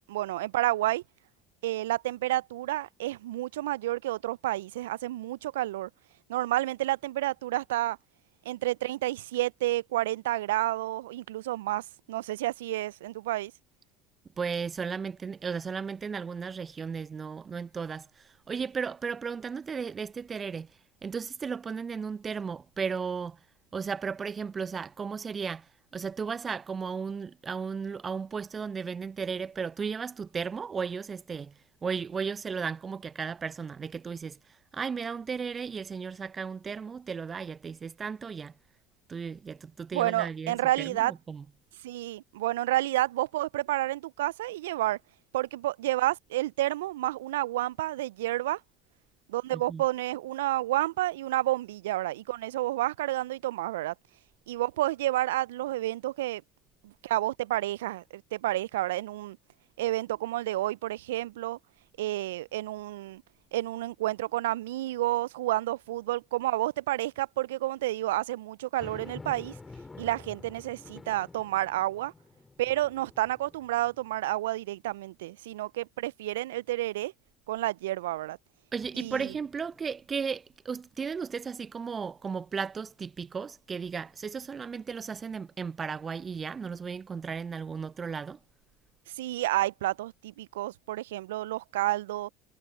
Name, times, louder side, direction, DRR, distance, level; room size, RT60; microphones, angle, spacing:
voice 1, 0.1-1.0 1.6-5.9 6.3-8.0 8.5-13.5 39.9-41.1 41.8-45.0 45.3-48.6 49.3-53.9 54.5-56.4 56.8-59.4 59.8-61.6 62.0-63.2 63.5-69.5 70.0-72.1 72.6-77.1 77.5-78.4 79.0-79.3 89.2-92.3, right 16 dB, 75° right, 0.5 m, -30 dB
voice 2, 14.4-20.7 21.0-23.4 23.7-25.7 25.9-31.5 31.8-34.4 34.7-38.5 39.1-41.5 49.5-49.9 78.7-88.4, right 6 dB, 30° right, 0.6 m, -35 dB
sound 1, 68.8-74.3 74.8-74.9 78.8-79.9, left 3 dB, 15° left, 2.8 m, -49 dB
hypercardioid pair, 75°, 0 cm